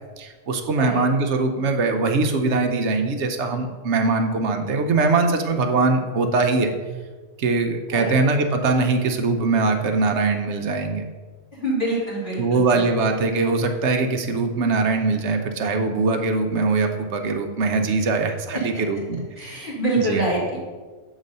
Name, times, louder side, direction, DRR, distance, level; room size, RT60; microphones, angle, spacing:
voice 1, 0.2-6.7 7.4-11.0 12.4-19.7 20.0-20.2, right 3 dB, 60° right, 5 dB, 0.9 m, -22 dB
voice 2, 11.5-12.8 18.5-18.6 19.4-20.6, right 1 dB, 35° left, -7 dB, 2.3 m, -25 dB
7.4 x 4.0 x 5.3 m, 1.4 s
omnidirectional pair, 1.5 m